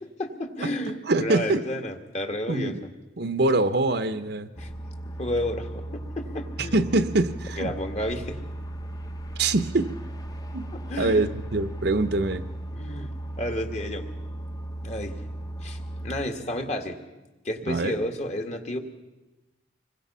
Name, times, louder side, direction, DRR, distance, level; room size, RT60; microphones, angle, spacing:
voice 1, 0.0-2.9 4.6-4.7 5.2-6.8 7.6-8.4 10.7-11.3 12.7-13.1 13.4-14.1 14.8-15.2 15.6-17.0 17.4-18.8, left 1 dB, 35° left, 5 dB, 2.0 m, -31 dB
voice 2, 1.1-1.6 2.5-2.8 3.2-4.5 6.7-7.7 9.4-9.9 10.5-10.6 11.0-12.4 17.7-17.9, right 2 dB, 60° right, 11 dB, 0.9 m, -24 dB
sound 1, 4.6-16.3, right 1 dB, 20° left, 1.0 m, -36 dB
26.0 x 22.0 x 5.7 m, 1.1 s
head